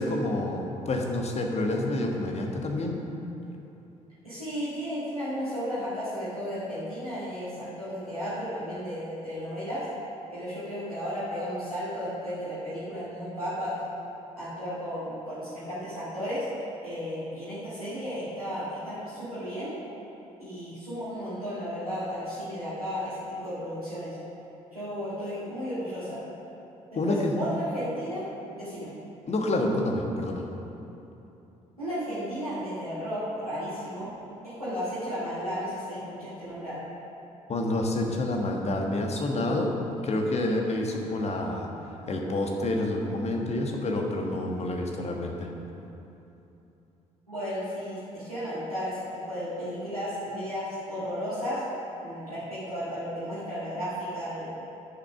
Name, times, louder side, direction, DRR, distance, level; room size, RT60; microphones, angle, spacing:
voice 1, 0.0-3.0 26.9-27.4 29.3-30.5 37.5-39.7 40.0-41.7 42.1-45.5, left 1 dB, 35° left, 1 dB, 1.5 m, -28 dB
voice 2, 4.2-9.8 10.3-13.8 14.4-16.4 16.8-19.7 20.4-24.1 24.7-26.2 26.9-28.2 28.5-28.9 31.8-34.1 34.4-36.8 47.3-51.6 52.0-54.5, equal, 90° right, -13 dB, 1.8 m, -34 dB
10.0 x 6.5 x 5.9 m, 2.9 s
figure-of-eight pair, 45°, 18 cm